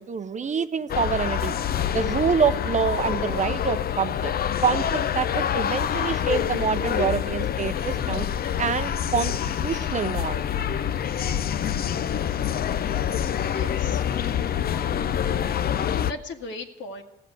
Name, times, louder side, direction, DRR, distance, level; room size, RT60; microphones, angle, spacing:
voice 1, 0.0-1.6 1.9-4.3 4.6-8.3 8.6-9.3 9.6-10.4, right 6 dB, 40° right, 12 dB, 0.7 m, -26 dB
sound 1, 0.9-16.1, left 9 dB, 50° left, 0.6 m, -26 dB
voice 2, 13.4-14.1 15.9-17.0, left 2 dB, 70° left, 3 dB, 1.9 m, -38 dB
15.5 x 7.7 x 9.5 m, 0.98 s
cardioid pair, 90°, 20 cm